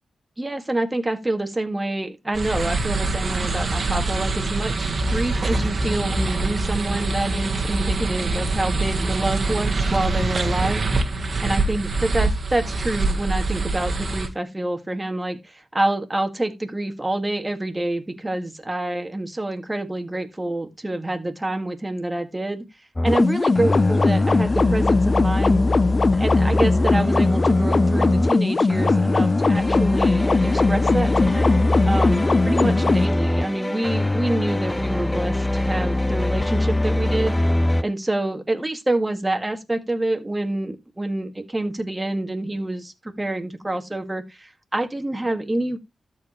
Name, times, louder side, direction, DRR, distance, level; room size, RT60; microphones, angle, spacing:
voice 1, 0.4-10.8 11.4-22.6 23.0-25.6 26.2-45.8, right 1 dB, 20° right, 2.0 m, -27 dB
sound 1, 2.3-14.3, right 3 dB, 50° right, 1.6 m, -24 dB
sound 2, 23.0-23.2 23.6-28.4 28.7-37.8, left 1 dB, 20° left, 0.7 m, -22 dB
sound 3, 23.1-33.1, left 3 dB, 45° left, 0.4 m, -20 dB
13.0 x 4.7 x 3.2 m
supercardioid pair, 45°, 0 cm